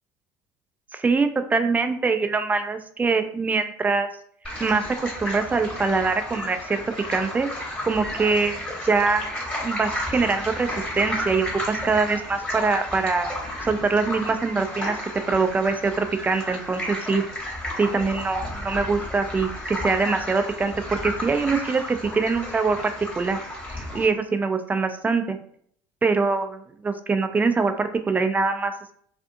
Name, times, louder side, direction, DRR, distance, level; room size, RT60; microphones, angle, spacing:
voice 1, 0.9-4.1 4.6-6.8 7.1-7.5 7.8-10.7 10.9-13.3 13.6-15.0 15.3-17.2 17.8-23.4 23.7-25.4 26.0-28.9, right 4 dB, 15° right, 8 dB, 0.3 m, -23 dB
sound 1, 4.4-24.1, left 1 dB, 10° left, 1.1 m, -33 dB
2.5 x 2.4 x 2.5 m, 0.63 s
hypercardioid pair, 75°, 10 cm